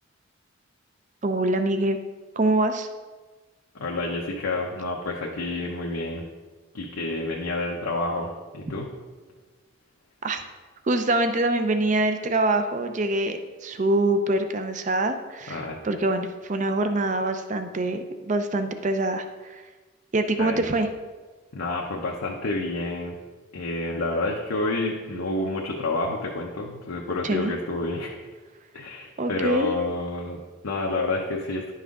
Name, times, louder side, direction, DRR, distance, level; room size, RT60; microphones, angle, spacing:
voice 1, 1.2-2.0 2.4-2.9 10.2-10.4 10.8-19.7 20.1-20.9 27.2-27.5 29.2-29.7, right 2 dB, 35° right, 8 dB, 0.5 m, -25 dB
voice 2, 3.7-6.3 6.7-8.9 15.5-15.8 20.4-20.6 21.5-23.2 23.5-28.2 28.7-31.7, left 2 dB, 80° left, -1 dB, 0.8 m, -29 dB
10.5 x 5.6 x 3.7 m, 1.3 s
head